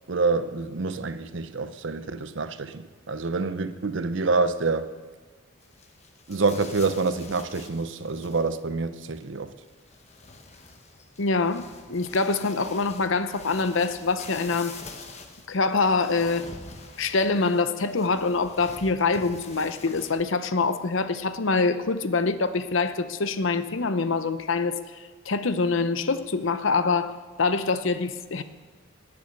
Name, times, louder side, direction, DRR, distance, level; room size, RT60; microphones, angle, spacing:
voice 1, 0.1-4.9 6.3-9.5, right 4 dB, 60° right, 0.7 m, -27 dB
sound 1, 5.6-8.7 9.0-20.4 20.7-20.8 21.1-21.4, left 3 dB, 30° left, 1.1 m, -46 dB
voice 2, 11.2-14.7 15.5-16.5 17.0-24.8 25.3-28.4, left 4 dB, 65° left, 0.7 m, -25 dB
19.0 x 7.0 x 6.6 m
head